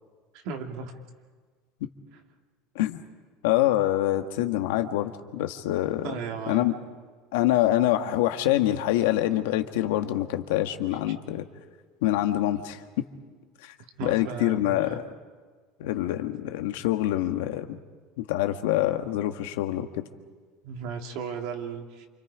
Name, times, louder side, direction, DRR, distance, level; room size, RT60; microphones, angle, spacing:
voice 1, 0.3-0.9 6.0-6.7 14.0-15.0 20.6-22.1, right 6 dB, 65° right, 3 dB, 2.9 m, -35 dB
voice 2, 3.4-6.1 6.5-6.7 7.3-11.4 12.0-12.8 14.0-15.0 15.8-17.8 18.2-20.0, left 14 dB, 85° left, 7 dB, 1.6 m, -25 dB
28.0 x 26.5 x 5.1 m, 1.5 s
cardioid pair, 150°, 0 cm